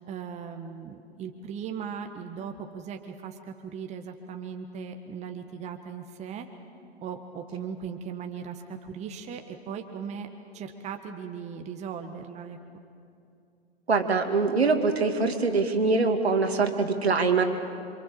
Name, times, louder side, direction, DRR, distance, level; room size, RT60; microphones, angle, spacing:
voice 1, 0.0-6.5 7.0-10.3 10.5-12.6, right 7 dB, 20° right, 5 dB, 1.6 m, -38 dB
voice 2, 13.9-17.4, right 4 dB, 75° right, 5 dB, 2.6 m, -23 dB
27.5 x 25.5 x 7.6 m, 2.5 s
figure-of-eight pair, 105°, 32 cm